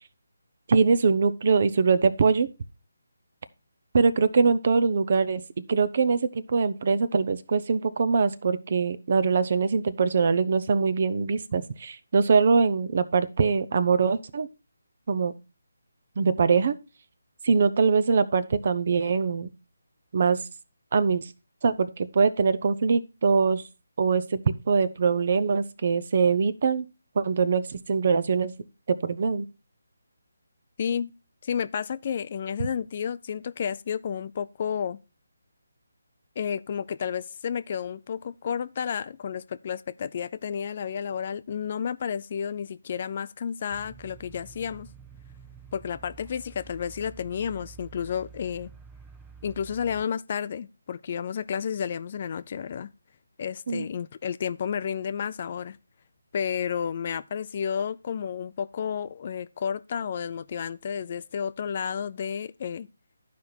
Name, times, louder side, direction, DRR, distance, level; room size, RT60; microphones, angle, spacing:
voice 1, 0.7-2.5 3.9-14.5 15.1-15.3 16.2-16.8 17.4-19.5 20.1-20.4 20.9-21.3 21.6-23.6 24.0-26.8 27.2-28.5 28.9-29.4 53.7-53.9, right 5 dB, 50° right, 0.8 m, -23 dB
voice 2, 30.8-31.1 31.4-35.0 36.4-44.9 45.7-48.7 49.4-52.9 53.4-55.8 56.3-62.9, left 7 dB, 40° left, 0.4 m, -31 dB
sound 1, 43.7-50.0, right 6 dB, 5° right, 0.6 m, -49 dB
12.0 x 5.2 x 4.4 m
figure-of-eight pair, 155°, 0 cm